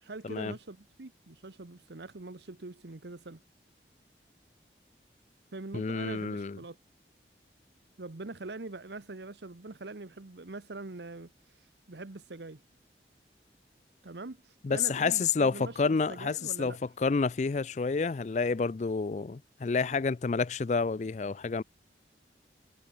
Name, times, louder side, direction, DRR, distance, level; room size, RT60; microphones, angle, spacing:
voice 1, 0.0-3.4 5.5-6.8 8.0-12.6 14.0-16.8, right 2 dB, 75° right, 1.1 m, -43 dB
voice 2, 5.7-6.6 14.6-21.6, left 4 dB, 40° left, 0.4 m, -29 dB
head